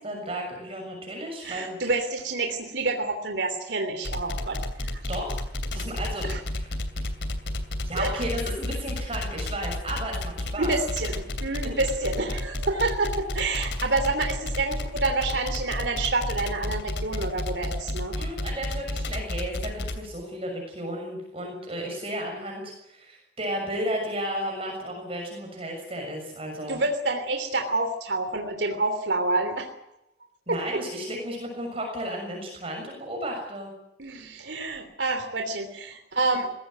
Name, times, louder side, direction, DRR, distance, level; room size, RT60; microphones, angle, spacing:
voice 1, 0.0-1.8 5.1-5.4 5.7-6.2 6.5-6.6 7.8-10.7 13.7-13.8 18.1-26.8 30.5-33.7, right 1 dB, 35° right, 1 dB, 6.6 m, -33 dB
voice 2, 1.4-5.0 5.7-5.8 6.2-6.4 7.9-8.1 10.6-18.1 26.7-29.7 30.5-30.8 34.0-36.5, right 3 dB, 80° right, 5 dB, 3.2 m, -28 dB
sound 1, 4.0-20.1, left 1 dB, 80° left, 2.8 m, -31 dB
21.0 x 17.0 x 9.3 m, 0.84 s
head